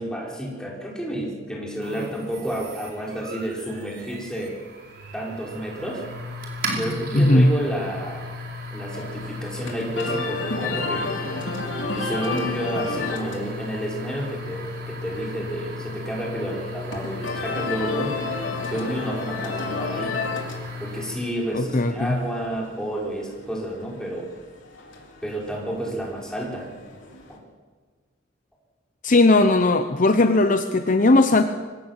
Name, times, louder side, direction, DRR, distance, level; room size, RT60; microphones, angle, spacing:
voice 1, 0.0-4.5 5.1-6.0 6.8-8.2 8.7-11.1 11.9-18.2 18.7-20.2 20.8-24.3 25.2-26.7 27.3-27.4, right 1 dB, 5° left, -3 dB, 5.1 m, -30 dB
sound 1, 1.8-21.4, left 1 dB, 50° right, 4.7 m, -36 dB
voice 2, 7.1-7.5 21.5-22.2 29.0-31.4, left 2 dB, 40° left, 8 dB, 0.9 m, -18 dB
sound 2, 8.9-27.4, left 3 dB, 75° left, 3.9 m, -33 dB
24.0 x 17.0 x 7.4 m, 1.5 s
head